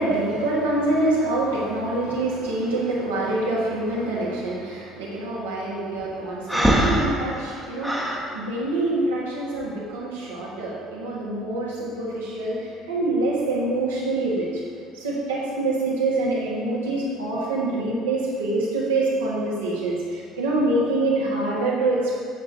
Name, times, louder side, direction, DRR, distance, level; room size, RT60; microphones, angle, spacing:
voice 1, 0.0-14.6 14.9-22.2, right 2 dB, 75° right, -7 dB, 1.9 m, -25 dB
Breathing, 6.5-8.2, equal, 5° right, 1.3 m, -22 dB
8.0 x 6.6 x 4.6 m, 2.1 s
figure-of-eight pair, 60°, 0 cm